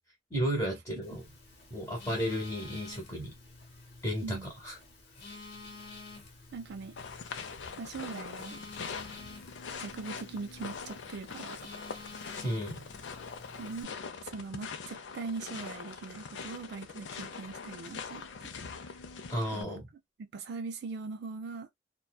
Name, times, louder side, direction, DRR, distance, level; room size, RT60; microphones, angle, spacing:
voice 1, 0.3-1.3 1.7-3.3 4.0-4.8 12.4-12.9 19.3-19.9, equal, 10° left, 0.9 m, -33 dB
Telephone, 1.0-13.8, left 3 dB, 60° left, 1.0 m, -50 dB
voice 2, 6.5-7.0 7.8-8.6 9.8-11.6 13.6-13.9 14.2-18.5 19.5-19.8 20.2-21.7, right 4 dB, 60° right, 0.4 m, -41 dB
sound 1, 7.0-19.6, left 5 dB, 75° left, 0.5 m, -43 dB
2.6 x 2.2 x 2.2 m
head